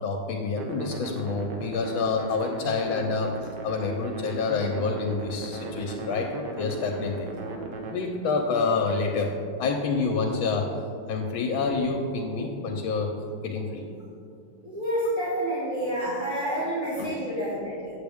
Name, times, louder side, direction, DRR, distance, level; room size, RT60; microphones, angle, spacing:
voice 1, 0.0-3.3 3.6-6.3 6.6-7.3 7.9-9.3 9.6-10.7 11.1-13.1 13.4-13.8 17.0-17.2, left 4 dB, 75° left, 2 dB, 1.4 m, -27 dB
sound 1, 0.6-7.9, right 2 dB, 65° right, 1.4 m, -37 dB
voice 2, 14.6-17.9, right 1 dB, 40° right, -10 dB, 2.1 m, -29 dB
8.6 x 7.7 x 3.5 m, 2.5 s
omnidirectional pair, 2.2 m